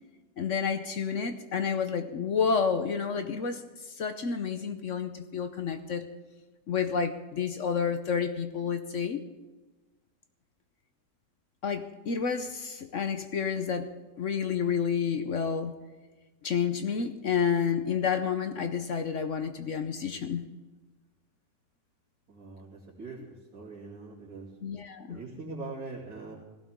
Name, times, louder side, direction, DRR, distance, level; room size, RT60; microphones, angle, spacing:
voice 1, 0.4-6.1 6.7-9.2 11.6-13.9 14.2-15.7 16.4-20.4 24.6-25.2, left 6 dB, 55° left, 8 dB, 0.9 m, -30 dB
voice 2, 22.3-23.2 23.5-24.5 25.1-26.3, right 3 dB, 55° right, -7 dB, 3.0 m, -42 dB
18.0 x 16.0 x 3.6 m, 1.2 s
omnidirectional pair, 1.9 m